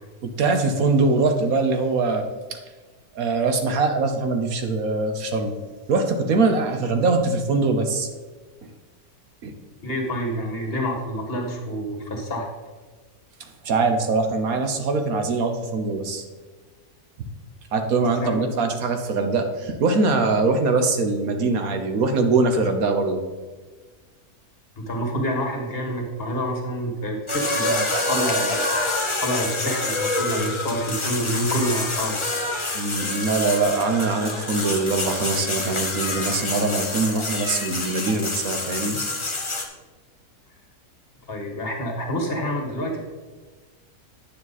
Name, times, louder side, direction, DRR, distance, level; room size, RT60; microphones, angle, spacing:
voice 1, 0.2-2.2 3.1-5.6 5.9-8.1 9.4-9.5 13.6-16.2 17.7-23.2 32.7-39.0, right 3 dB, 70° right, 6 dB, 1.4 m, -22 dB
voice 2, 9.8-12.5 18.2-18.5 24.8-28.6 29.2-32.2 41.3-43.0, equal, 40° left, 0 dB, 1.8 m, -27 dB
sound 1, 27.3-39.7, left 2 dB, 25° left, 0.9 m, -27 dB
9.1 x 7.3 x 4.1 m, 1.4 s
omnidirectional pair, 1.6 m